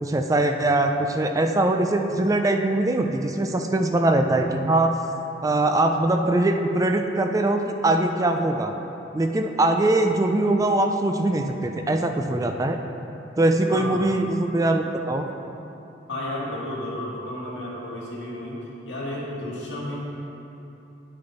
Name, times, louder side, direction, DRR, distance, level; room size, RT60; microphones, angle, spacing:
voice 1, 0.0-4.9 5.4-8.7 9.1-12.8 13.4-15.3, right 2 dB, 20° right, 5 dB, 0.4 m, -22 dB
voice 2, 13.7-14.1 16.1-18.6 18.8-19.9, left 1 dB, 80° left, -6 dB, 2.1 m, -32 dB
9.7 x 6.5 x 4.1 m, 2.9 s
head